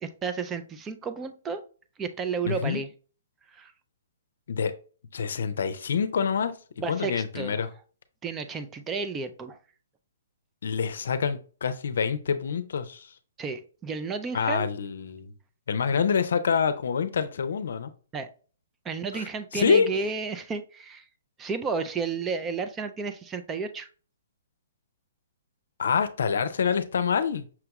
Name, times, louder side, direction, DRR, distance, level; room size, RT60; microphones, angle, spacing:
voice 1, 0.0-1.6 2.0-2.9 3.5-3.7 6.8-7.6 8.2-9.6 13.4-14.7 18.1-18.3 18.8-21.0 21.4-23.9, right 5 dB, 15° right, 0.4 m, -32 dB
voice 2, 2.4-2.8 4.5-4.7 5.1-6.6 6.9-7.7 10.6-13.1 14.3-15.3 15.7-17.9 19.1-19.3 19.5-20.0 25.8-27.4, left 6 dB, 70° left, 0.5 m, -26 dB
5.8 x 2.3 x 2.9 m
hypercardioid pair, 150°, 0 cm